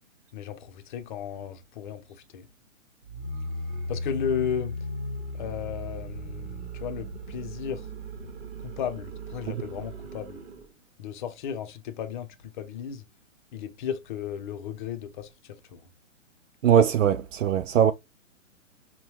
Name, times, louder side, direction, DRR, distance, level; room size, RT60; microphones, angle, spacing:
voice 1, 0.3-2.5 3.9-4.8 5.3-7.9 8.6-10.4 11.0-13.0 13.5-15.8, left 8 dB, 40° left, 0.7 m, -34 dB
sound 1, 3.0-10.7, equal, 50° right, 1.2 m, -37 dB
voice 2, 16.6-17.9, right 9 dB, 70° right, 0.5 m, -20 dB
5.4 x 2.3 x 2.9 m
figure-of-eight pair, 125°, 40 cm